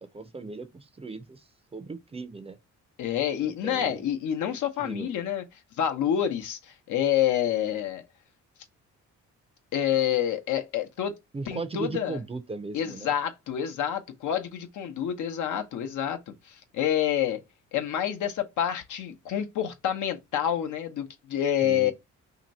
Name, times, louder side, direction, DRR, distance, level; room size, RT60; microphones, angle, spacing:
voice 1, 0.0-2.6 3.4-4.1 4.5-5.1 11.3-13.1 21.6-21.9, right 4 dB, 20° right, 0.5 m, -38 dB
voice 2, 3.0-5.4 5.8-8.0 9.7-11.1 11.5-12.2 12.7-16.2 16.4-17.4 17.7-21.9, left 10 dB, 75° left, 0.8 m, -28 dB
2.8 x 2.6 x 4.1 m
cardioid pair, 90°, 30 cm